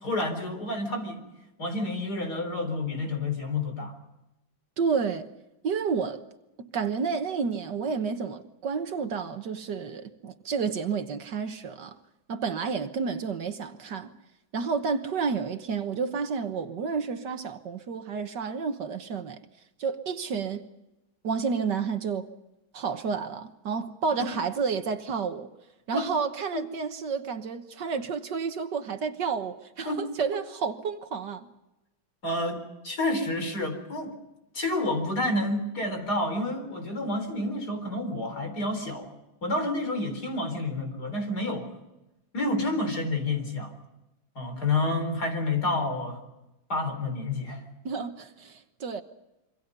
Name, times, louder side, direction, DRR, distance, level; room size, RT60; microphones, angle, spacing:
voice 1, 0.0-1.2 1.6-3.9 25.9-26.1 26.5-26.6 29.9-30.0 32.2-34.1 34.5-39.1 39.4-41.7 42.3-43.7 44.4-46.2 46.7-47.6, left 2 dB, 55° left, 4.7 m, -29 dB
voice 2, 4.8-5.3 5.6-6.2 6.6-12.0 12.3-14.1 14.5-19.4 19.8-20.7 21.2-22.3 22.7-25.5 25.9-31.5 47.9-49.0, right 5 dB, 65° right, 1.8 m, -30 dB
27.0 x 25.0 x 5.5 m
omnidirectional pair, 2.1 m